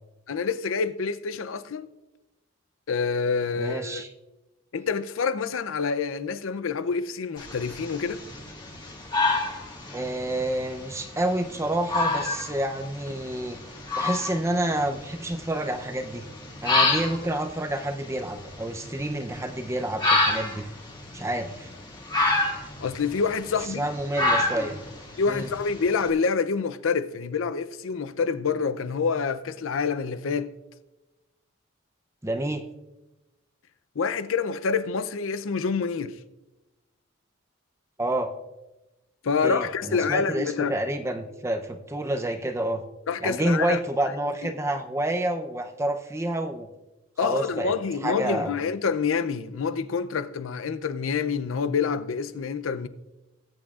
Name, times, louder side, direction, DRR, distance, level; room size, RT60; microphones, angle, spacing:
voice 1, 0.3-1.9 2.9-4.0 4.7-8.2 22.8-23.9 25.2-30.5 34.0-36.2 39.2-40.8 43.1-43.8 44.4-44.5 47.2-52.9, left 5 dB, 80° left, 0.5 m, -27 dB
voice 2, 3.6-4.1 9.9-13.6 14.0-16.3 16.6-20.6 21.1-21.7 23.8-24.8 25.3-25.5 32.2-32.6 38.0-38.3 39.4-42.8 43.2-46.7 47.2-47.7 48.0-48.5, right 1 dB, 15° right, 0.6 m, -28 dB
sound 1, 7.4-26.1, left 2 dB, 20° left, 1.7 m, -29 dB
19.5 x 8.7 x 2.4 m
head